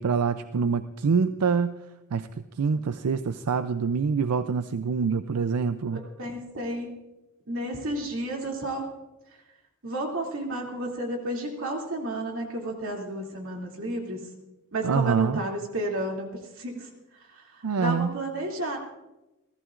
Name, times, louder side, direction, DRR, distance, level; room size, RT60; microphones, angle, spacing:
voice 1, 0.0-1.8 2.1-2.3 2.6-6.0 14.8-15.4 17.6-18.2, right 5 dB, 90° right, 11 dB, 0.5 m, -25 dB
voice 2, 5.9-6.9 7.5-8.8 9.8-14.2 14.7-16.9 17.3-18.8, right 1 dB, 65° right, 0 dB, 2.6 m, -32 dB
30.0 x 14.0 x 2.5 m, 0.99 s
head